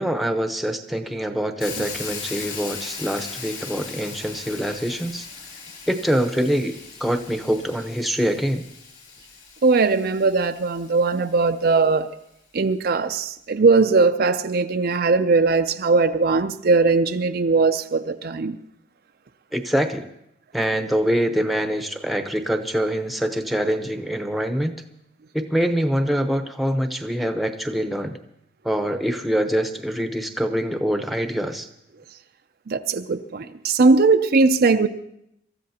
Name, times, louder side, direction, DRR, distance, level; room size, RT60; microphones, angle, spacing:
voice 1, 0.0-5.3 5.9-8.6 19.5-20.1 20.5-24.7 25.3-28.2 28.6-31.7, equal, ahead, 0.9 m, -24 dB
Hiss, 1.6-11.5, left 5 dB, 40° left, 3.0 m, -38 dB
voice 2, 9.6-12.1 12.5-18.6 32.7-34.9, right 4 dB, 55° right, 0.5 m, -19 dB
26.5 x 14.0 x 2.9 m
head